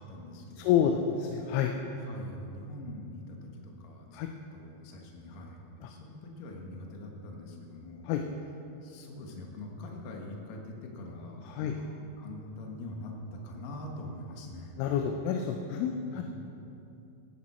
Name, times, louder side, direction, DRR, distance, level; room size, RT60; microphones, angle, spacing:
voice 1, 0.1-0.9 2.0-8.1 8.8-14.9 15.9-16.2, left 1 dB, 60° left, 0 dB, 2.5 m, -44 dB
voice 2, 0.6-1.7 4.1-4.3 8.1-8.2 11.6-11.7 14.8-16.2, left 8 dB, 85° left, 3 dB, 3.1 m, -28 dB
15.5 x 12.0 x 4.4 m, 2.8 s
omnidirectional pair, 5.6 m